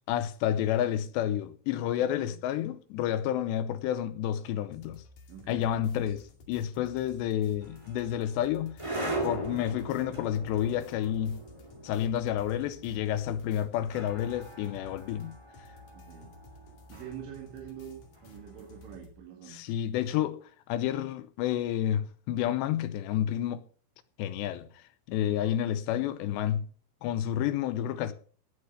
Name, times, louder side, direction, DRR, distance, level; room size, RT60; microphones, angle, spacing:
voice 1, 0.1-5.0 5.5-8.7 9.2-11.4 11.8-15.4 19.5-23.6 24.2-26.7 27.0-28.1, left 11 dB, 80° left, 2.7 m, -30 dB
voice 2, 2.0-2.4 5.3-6.1 15.9-16.3 16.9-19.6, right 9 dB, 80° right, 4.3 m, -46 dB
sound 1, 4.7-19.1, left 2 dB, 50° left, 3.4 m, -54 dB
sound 2, 7.6-18.7, right 1 dB, 55° right, 0.3 m, -41 dB
18.5 x 6.6 x 5.5 m
omnidirectional pair, 5.4 m